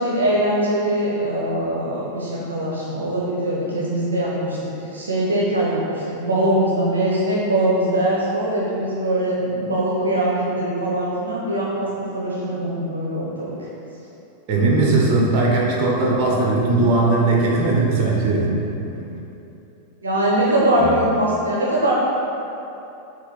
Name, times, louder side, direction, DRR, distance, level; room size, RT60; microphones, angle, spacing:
voice 1, 0.0-4.6 4.9-13.5 20.0-21.9, right 1 dB, 70° right, -5 dB, 1.0 m, -22 dB
voice 2, 14.5-18.5 18.8-18.9 20.8-21.0, right 2 dB, 40° right, -3 dB, 1.5 m, -19 dB
8.1 x 3.0 x 6.2 m, 2.9 s
figure-of-eight pair, 90°, 0 cm